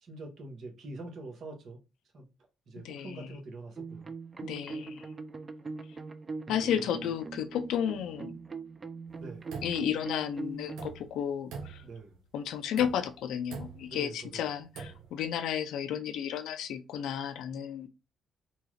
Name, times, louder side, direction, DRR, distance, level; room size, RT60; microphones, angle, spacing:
voice 1, 0.0-1.8 2.1-2.3 2.7-4.1 9.2-9.5 11.8-12.2 13.9-14.5, right 2 dB, 60° right, 1.1 m, -44 dB
voice 2, 2.7-3.3 4.4-5.0 6.5-8.3 9.6-11.8 12.3-17.9, left 9 dB, 85° left, 0.4 m, -33 dB
sound 1, 3.8-10.9, right 4 dB, 30° right, 0.4 m, -41 dB
sound 2, 9.1-10.2 10.6-11.2 11.5-12.2 12.7-13.2 13.5-14.0 14.6-15.1, right 5 dB, 85° right, 0.8 m, -43 dB
2.8 x 2.3 x 3.1 m
cardioid pair, 90°, 0 cm